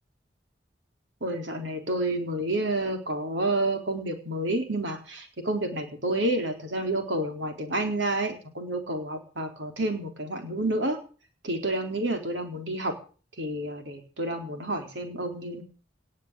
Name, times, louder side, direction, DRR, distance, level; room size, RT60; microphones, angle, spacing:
voice 1, 1.2-11.0 11.4-13.0 13.4-15.6, right 1 dB, 90° right, 4 dB, 4.1 m, -29 dB
19.0 x 7.3 x 8.4 m, 0.40 s
head